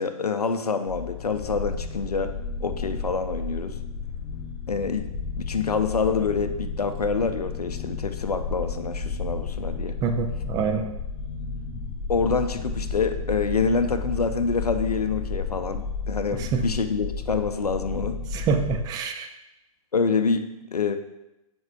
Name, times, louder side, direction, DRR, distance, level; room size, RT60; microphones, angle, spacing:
voice 1, 0.0-2.3 2.6-3.8 4.7-5.1 5.4-10.0 12.1-18.2 19.9-21.0, left 5 dB, 85° left, 9 dB, 0.5 m, -26 dB
sound 1, 0.9-18.8, left 4 dB, 30° left, 1.0 m, -32 dB
voice 2, 10.0-10.9 16.4-16.6 18.3-19.3, right 5 dB, 20° right, 6 dB, 0.4 m, -26 dB
7.8 x 5.3 x 2.3 m, 0.92 s
figure-of-eight pair, 115°, 19 cm